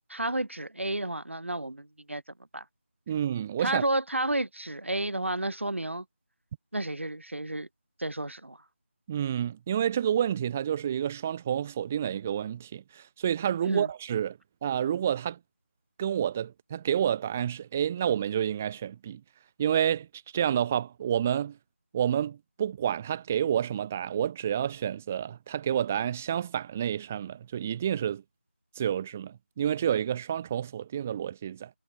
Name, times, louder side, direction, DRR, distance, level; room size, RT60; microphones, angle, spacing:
voice 1, 0.1-2.2 2.5-2.6 3.6-6.1 6.7-7.7 8.0-8.6 13.7-13.9, right 1 dB, 75° right, 3.8 m, -31 dB
voice 2, 3.1-3.8 9.1-15.4 16.0-19.2 19.6-20.1 20.3-21.6 21.9-28.2 28.8-31.7, right 9 dB, 10° right, 2.5 m, -29 dB
figure-of-eight pair, 175°, 7 cm